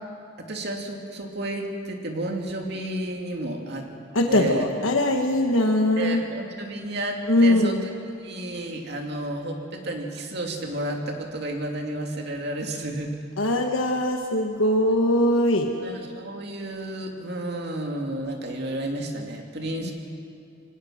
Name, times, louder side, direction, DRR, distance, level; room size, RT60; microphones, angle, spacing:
voice 1, 0.4-3.9 4.3-4.7 6.0-13.2 15.8-19.9, right 1 dB, 55° right, 2 dB, 2.6 m, -31 dB
voice 2, 4.1-6.2 7.3-7.8 13.4-15.7 19.8-19.9, left 1 dB, 85° left, 3 dB, 1.4 m, -21 dB
25.5 x 17.5 x 6.5 m, 2.5 s
head